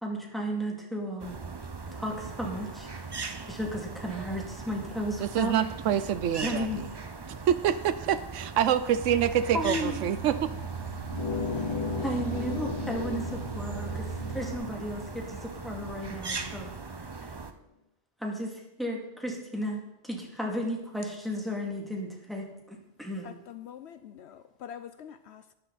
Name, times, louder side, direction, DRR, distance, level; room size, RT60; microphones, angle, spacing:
voice 1, 0.0-1.5 1.9-3.2 3.5-5.6 6.4-6.8 9.5-10.0 12.0-16.7 17.0-17.3 18.2-23.3, equal, ahead, -1 dB, 2.3 m, -34 dB
sound 1, 1.2-17.5, right 4 dB, 30° right, 0.5 m, -40 dB
voice 2, 5.2-6.9 7.3-10.5, right 9 dB, 85° right, 13 dB, 1.0 m, -26 dB
sound 2, 9.0-14.6, right 5 dB, 60° right, 1.3 m, -38 dB
sound 3, 11.1-16.4, left 5 dB, 30° left, 0.6 m, -36 dB
voice 3, 23.2-25.5, left 9 dB, 70° left, 12 dB, 0.8 m, -45 dB
13.5 x 9.7 x 4.1 m, 0.89 s
omnidirectional pair, 1.2 m